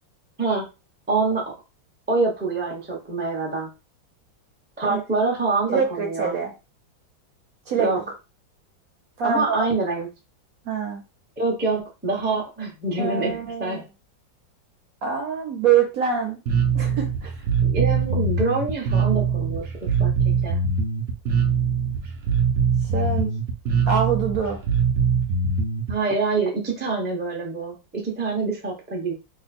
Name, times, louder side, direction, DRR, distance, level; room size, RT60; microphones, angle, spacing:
voice 1, 1.1-1.4 2.1-3.7 4.8-6.4 7.8-8.0 9.2-10.1 11.4-13.8 17.6-20.6 25.9-29.1, right 3 dB, 10° right, -1 dB, 0.4 m, -25 dB
voice 2, 5.7-6.5 7.7-7.9 9.2-9.7 10.7-11.0 13.0-13.8 15.0-16.4 16.7-17.3 22.9-23.3 23.9-24.6, right 7 dB, 65° right, 2 dB, 1.0 m, -24 dB
Bass guitar, 16.5-25.9, right 6 dB, 85° right, 0.6 m, -22 dB
3.0 x 2.2 x 4.1 m, 0.27 s
omnidirectional pair, 2.0 m